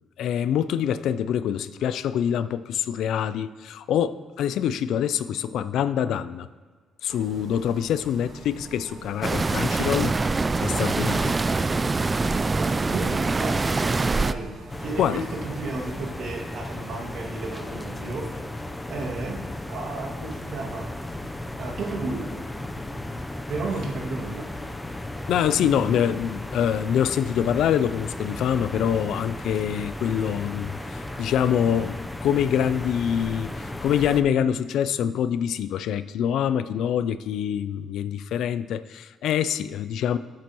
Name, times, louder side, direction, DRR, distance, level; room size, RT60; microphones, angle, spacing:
voice 1, 0.2-6.5 7.0-10.2 10.6-11.4 15.0-15.2 25.3-40.2, left 9 dB, 80° left, 14 dB, 0.4 m, -25 dB
sound 1, 7.1-16.1, right 3 dB, 55° right, 1.7 m, -45 dB
sound 2, 9.2-14.3, right 3 dB, 25° right, 0.3 m, -24 dB
voice 2, 12.6-14.5 14.8-21.2 21.6-22.4 23.5-24.5 25.5-25.9, right 3 dB, 70° right, -2 dB, 2.1 m, -33 dB
sound 3, 14.7-34.2, left 1 dB, 15° left, 0.7 m, -35 dB
13.5 x 7.5 x 3.0 m, 1.5 s
cardioid pair, 90°, 0 cm